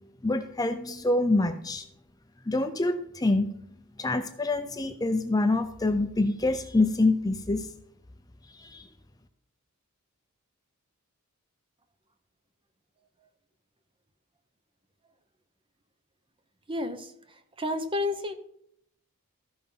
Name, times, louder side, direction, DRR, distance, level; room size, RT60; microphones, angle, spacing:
voice 1, 0.2-1.8 2.5-3.5 4.0-7.7 8.5-8.9, left 2 dB, 15° left, 8 dB, 0.6 m, -26 dB
voice 2, 16.7-17.1 17.6-18.3, left 2 dB, 25° right, 9 dB, 0.8 m, -30 dB
14.5 x 5.4 x 5.5 m, 0.72 s
head